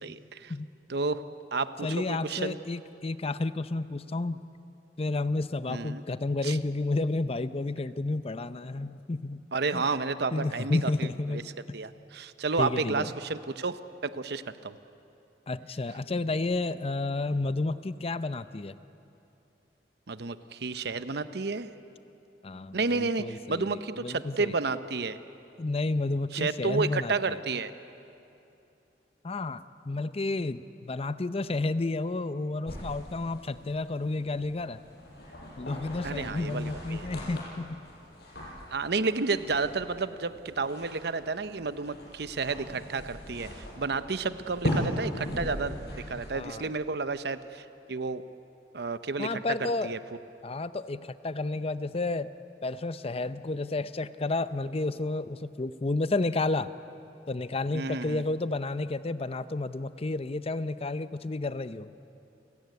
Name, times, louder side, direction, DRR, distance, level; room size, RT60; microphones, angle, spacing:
voice 1, 0.0-0.5 0.9-1.2 1.5-2.6 5.7-6.0 6.4-6.6 9.5-11.4 11.7-14.8 20.1-21.7 22.7-25.2 26.3-27.7 36.0-37.1 38.7-45.8 46.1-48.2 48.7-50.0 57.7-58.2, right 4 dB, 65° right, 12 dB, 0.8 m, -31 dB
voice 2, 1.8-4.4 5.0-9.4 9.7-9.9 10.3-11.5 12.6-13.1 15.5-18.8 22.4-24.5 25.6-27.4 29.2-34.8 35.6-37.8 46.3-46.7 49.2-49.9 50.4-52.3 52.6-56.7 57.3-61.9, left 2 dB, 35° left, 13 dB, 0.6 m, -31 dB
sound 1, 32.7-46.3, left 1 dB, 65° left, 5.7 m, -39 dB
29.5 x 16.0 x 9.5 m, 2.8 s
head